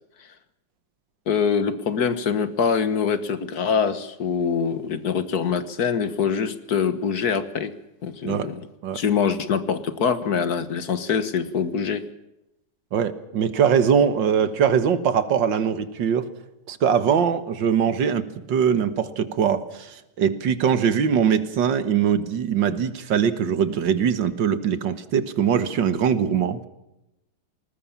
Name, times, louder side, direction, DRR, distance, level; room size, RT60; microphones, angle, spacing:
voice 1, 1.3-7.7 8.0-8.7 8.9-12.0, left 6 dB, 60° left, 13 dB, 1.8 m, -24 dB
voice 2, 12.9-16.3 16.7-26.7, right 7 dB, 85° right, 13 dB, 2.0 m, -22 dB
20.0 x 19.5 x 7.3 m, 0.91 s
omnidirectional pair, 1.9 m